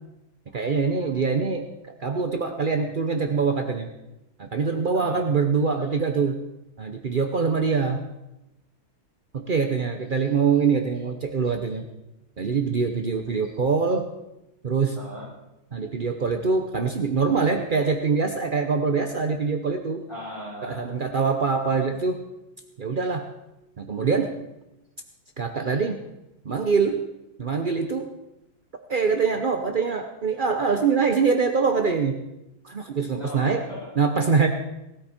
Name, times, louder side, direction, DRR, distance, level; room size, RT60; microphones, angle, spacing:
voice 1, 0.5-1.7 2.0-3.9 4.4-6.4 6.8-8.0 9.3-11.9 12.4-14.1 14.6-15.0 15.7-20.0 20.6-22.2 22.8-23.3 23.8-24.3 25.4-26.0 26.4-27.1 27.4-28.1 28.9-32.2 32.6-33.6 34.0-34.5, right 5 dB, 55° right, 5 dB, 0.5 m, -24 dB
voice 2, 4.9-5.2 15.0-15.3 20.1-20.9 33.1-33.9, equal, 15° left, -7 dB, 7.9 m, -38 dB
19.0 x 13.5 x 4.4 m, 0.93 s
omnidirectional pair, 2.3 m